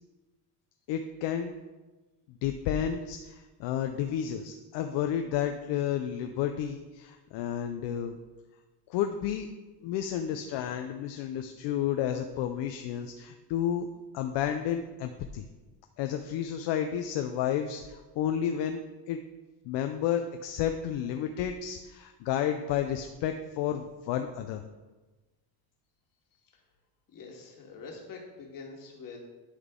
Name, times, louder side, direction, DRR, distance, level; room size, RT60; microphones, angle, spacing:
voice 1, 0.9-1.5 2.3-8.2 8.9-9.5 9.8-13.9 14.1-15.5 16.0-19.2 19.6-24.6, left 9 dB, 70° left, 6 dB, 0.6 m, -31 dB
voice 2, 27.1-29.2, left 4 dB, 45° left, 0 dB, 1.7 m, -45 dB
11.0 x 4.0 x 3.7 m, 1.2 s
cardioid pair, 130°, 44 cm